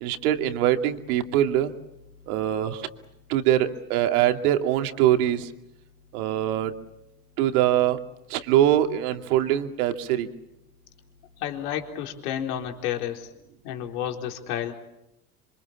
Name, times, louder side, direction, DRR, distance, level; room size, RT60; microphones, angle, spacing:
voice 1, 0.0-1.7 2.3-2.9 3.3-5.5 6.1-6.7 7.4-8.0 8.3-10.3, right 12 dB, 75° right, 6 dB, 2.6 m, -23 dB
voice 2, 11.4-13.3 13.6-14.7, left 10 dB, 75° left, 3 dB, 4.0 m, -31 dB
27.5 x 25.0 x 7.3 m, 0.89 s
supercardioid pair, 105°, 45 cm